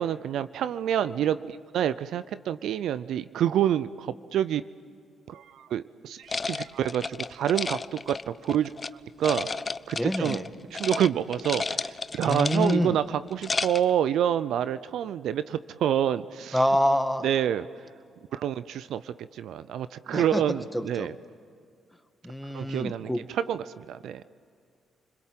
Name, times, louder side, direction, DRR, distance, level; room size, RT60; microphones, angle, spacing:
voice 1, 0.0-4.6 5.3-8.7 9.2-9.5 9.9-10.4 10.8-16.6 17.2-17.7 18.3-21.1 22.5-23.1 23.5-24.2, right 10 dB, 75° right, 15 dB, 0.5 m, -27 dB
sound 1, 6.3-8.9 9.2-10.5 10.7-11.1 11.3-12.9 13.3-13.9, left 4 dB, 35° left, 0.6 m, -32 dB
voice 2, 10.0-10.4 12.2-13.0 16.5-17.3 20.1-20.4 20.7-21.1 22.2-23.2, equal, 5° left, 7 dB, 2.0 m, -26 dB
29.0 x 21.5 x 7.6 m, 2.3 s
supercardioid pair, 50°, 0 cm